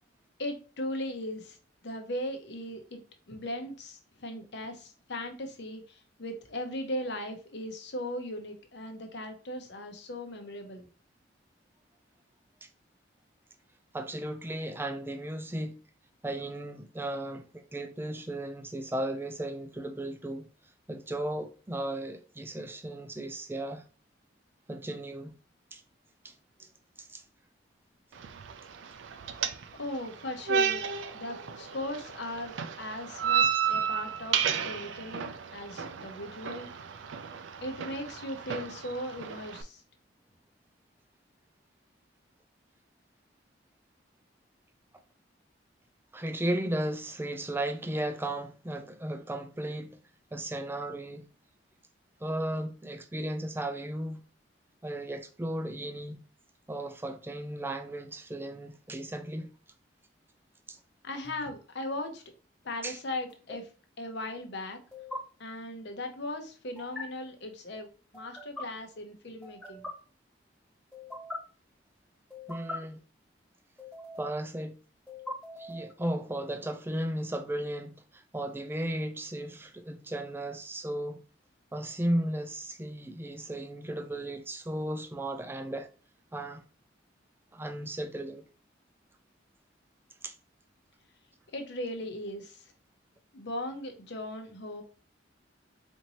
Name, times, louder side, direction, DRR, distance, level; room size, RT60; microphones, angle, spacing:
voice 1, 0.4-1.6 1.8-3.0 3.3-10.9 29.8-30.9 31.1-36.7 37.6-39.8 61.0-62.2 62.6-63.7 64.0-64.8 65.4-69.9 91.5-92.7 93.3-94.8, left 1 dB, 60° left, 0.8 m, -38 dB
voice 2, 13.9-15.8 16.2-20.5 20.9-23.8 24.7-25.4 25.7-25.8 26.2-26.3 26.6-26.7 27.0-27.2 46.1-50.0 50.3-51.3 52.2-54.2 54.8-56.2 56.7-59.5 60.7-60.8 62.8-63.0 72.5-73.0 74.2-74.8 75.6-81.2 81.7-85.9 86.3-86.6 87.5-88.4 90.2-90.3, right 1 dB, 10° right, 0.4 m, -35 dB
sound 1, 28.1-39.6, right 7 dB, 75° right, 0.4 m, -33 dB
sound 2, 61.2-61.5 63.3-63.6 64.9-65.2 66.8-67.0 68.1-68.6 69.4-69.9 70.9-71.4 72.3-72.8 73.8-74.4 75.1-75.9, left 2 dB, 5° left, 1.4 m, -41 dB
4.4 x 2.7 x 2.9 m
head